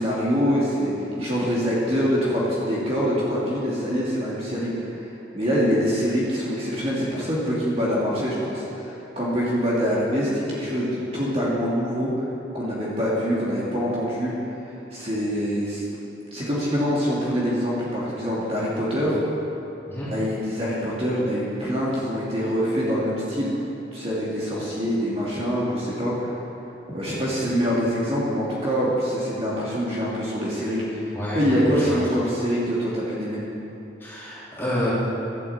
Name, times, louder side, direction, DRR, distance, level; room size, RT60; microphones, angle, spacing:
voice 1, 0.0-4.9 5.3-12.1 12.5-14.3 14.9-15.8 16.3-19.2 20.0-23.6 23.9-26.3 26.9-33.4, equal, 30° right, -7 dB, 2.7 m, -25 dB
voice 2, 31.1-32.0 34.0-34.9, left 1 dB, 10° left, -10 dB, 3.7 m, -29 dB
12.0 x 8.6 x 8.6 m, 2.9 s
head